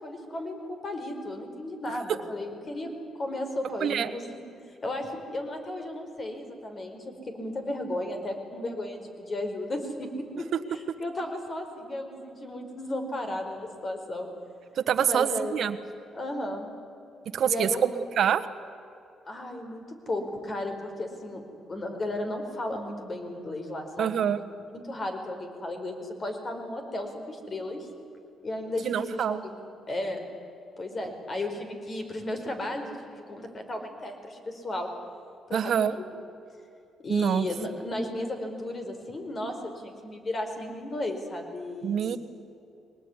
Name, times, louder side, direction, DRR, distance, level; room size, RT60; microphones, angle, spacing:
voice 1, 0.0-2.9 3.2-4.4 4.8-10.1 10.4-14.3 15.0-15.6 16.1-16.7 17.4-18.0 19.2-24.2 24.7-27.9 28.4-29.6 29.9-30.2 30.8-34.9 35.5-36.0 37.0-42.0, left 1 dB, 40° left, 5 dB, 4.7 m, -34 dB
voice 2, 3.8-4.1 14.7-15.8 17.3-18.4 24.0-24.4 28.8-29.4 35.5-36.0 37.1-37.5 41.8-42.2, right 8 dB, 65° right, 11 dB, 1.3 m, -26 dB
22.5 x 19.5 x 9.8 m, 2.7 s
cardioid pair, 90°, 0 cm